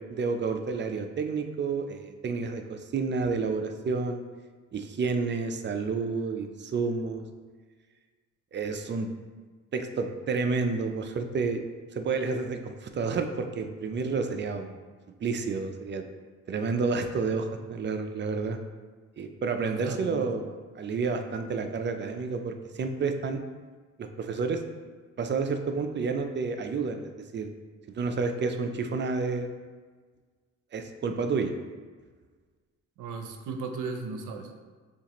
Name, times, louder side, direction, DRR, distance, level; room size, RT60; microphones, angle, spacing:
voice 1, 0.1-4.2 4.7-7.2 8.5-9.1 9.7-11.6 11.9-14.8 15.2-16.0 16.5-18.6 19.2-23.4 24.0-24.6 25.2-27.5 28.0-29.5 30.7-31.5, right 4 dB, 35° right, 6 dB, 0.5 m, -30 dB
voice 2, 19.6-20.3 33.0-34.5, right 4 dB, 80° right, 5 dB, 0.6 m, -36 dB
6.8 x 2.5 x 3.0 m, 1.5 s
cardioid pair, 90°, 30 cm